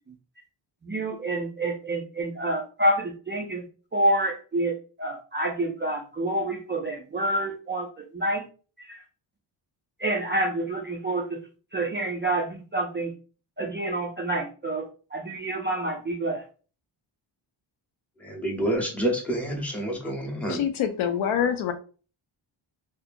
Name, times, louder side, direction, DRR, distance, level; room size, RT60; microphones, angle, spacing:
voice 1, 0.8-3.7 3.9-8.5 8.8-9.0 10.0-11.4 11.7-13.1 13.6-16.4, right 1 dB, 25° right, 0.3 m, -28 dB
voice 2, 18.2-20.6, right 1 dB, 5° left, 0.7 m, -28 dB
voice 3, 20.5-21.7, left 8 dB, 70° left, 0.5 m, -25 dB
2.7 x 2.4 x 2.5 m
cardioid pair, 95°, 50 cm